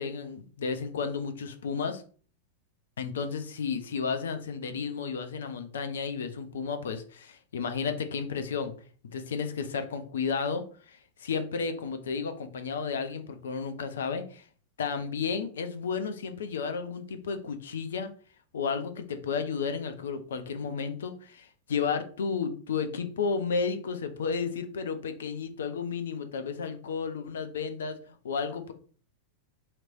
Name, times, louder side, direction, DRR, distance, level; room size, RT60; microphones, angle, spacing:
voice 1, 0.0-2.0 3.0-8.7 9.0-14.5 14.8-18.1 18.5-28.7, left 5 dB, 65° left, 9 dB, 0.6 m, -32 dB
4.3 x 3.0 x 2.5 m, 0.42 s
figure-of-eight pair, 90°, 0 cm